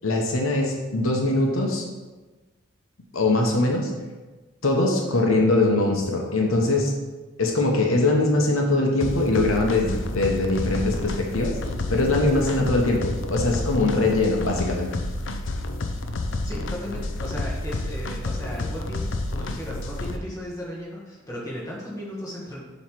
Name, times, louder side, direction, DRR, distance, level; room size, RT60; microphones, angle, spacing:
voice 1, 0.0-1.8 3.1-3.9 4.6-6.9 7.4-11.6 11.9-14.9, left 2 dB, 75° left, 0 dB, 1.0 m, -22 dB
sound 1, 9.0-20.2, left 2 dB, 60° left, 0.6 m, -30 dB
voice 2, 16.4-22.6, equal, 15° left, -5 dB, 1.6 m, -36 dB
7.3 x 3.2 x 6.0 m, 1.2 s
head